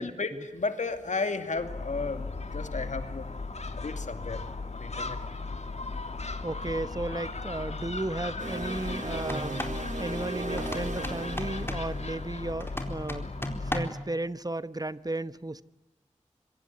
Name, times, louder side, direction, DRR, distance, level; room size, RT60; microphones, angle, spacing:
voice 1, 0.0-3.3 3.8-4.4 4.7-5.2, left 3 dB, 90° left, 2.5 m, -33 dB
Gull seagull, 1.5-14.0, left 3 dB, 65° left, 2.5 m, -37 dB
voice 2, 6.4-9.7 10.0-15.6, right 2 dB, 30° right, 1.0 m, -34 dB
sound 1, 8.4-12.7, right 2 dB, 90° right, 3.3 m, -38 dB
sound 2, 9.2-9.8 10.6-11.9 12.6-14.1, left 1 dB, 20° left, 4.2 m, -36 dB
26.0 x 24.0 x 9.6 m
wide cardioid pair, 45°, 12 cm